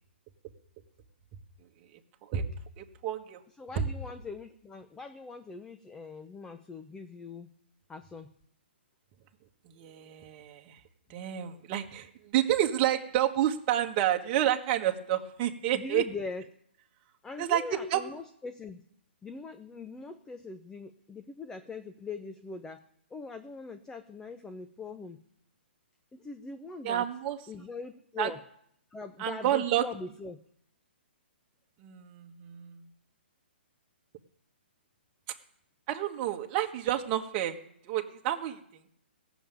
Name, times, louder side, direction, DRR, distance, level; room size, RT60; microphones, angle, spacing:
voice 1, 2.8-3.4 3.7-3.8 9.8-10.7 11.1-16.0 17.4-18.0 26.8-27.4 28.2-28.3 29.2-29.8 31.8-32.8 35.9-37.6 37.9-38.6, right 12 dB, 30° right, 4 dB, 1.5 m, -29 dB
voice 2, 3.6-7.5 7.9-8.3 15.7-16.5 17.2-18.8 19.2-22.8 23.1-25.2 26.1-27.1 27.5-28.4 28.9-30.4, left 4 dB, 10° left, 8 dB, 0.7 m, -41 dB
16.5 x 7.2 x 9.1 m, 0.71 s
hypercardioid pair, 140°, 6 cm